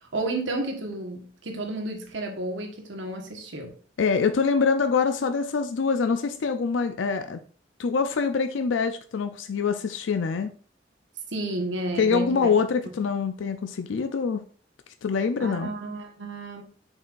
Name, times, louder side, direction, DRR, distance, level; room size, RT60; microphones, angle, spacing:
voice 1, 0.0-3.7 11.3-12.5 12.9-13.0 15.4-16.6, right 2 dB, 85° right, 3 dB, 1.4 m, -32 dB
voice 2, 4.0-7.4 7.8-10.5 12.0-14.4 15.0-15.7, left 5 dB, 90° left, 9 dB, 0.5 m, -25 dB
6.8 x 5.4 x 2.5 m, 0.43 s
head